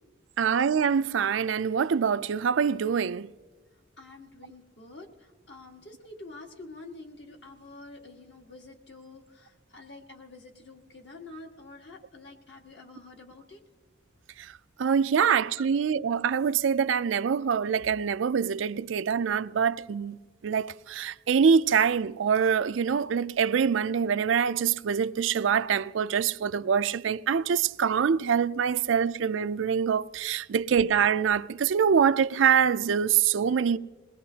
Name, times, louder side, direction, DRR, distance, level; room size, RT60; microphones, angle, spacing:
voice 1, 0.4-3.3 14.8-20.2 20.4-33.8, right 7 dB, 85° right, 0.4 m, -25 dB
voice 2, 4.0-5.1 5.5-13.6 15.6-15.7, left 2 dB, 65° left, 1.7 m, -47 dB
21.0 x 20.5 x 2.8 m
head